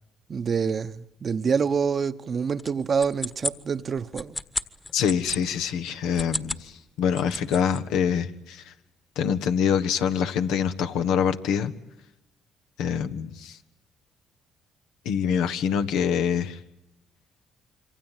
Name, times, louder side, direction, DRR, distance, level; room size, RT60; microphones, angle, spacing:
voice 1, 0.3-4.4, right 6 dB, 45° right, 1.1 m, -26 dB
sound 1, 2.6-5.4 6.0-6.7 7.0-7.8, left 2 dB, 20° left, 1.6 m, -33 dB
voice 2, 4.9-8.7 9.1-11.7 12.8-13.6 15.0-16.6, left 7 dB, 80° left, 1.4 m, -25 dB
26.5 x 24.0 x 9.2 m
supercardioid pair, 60°, 0 cm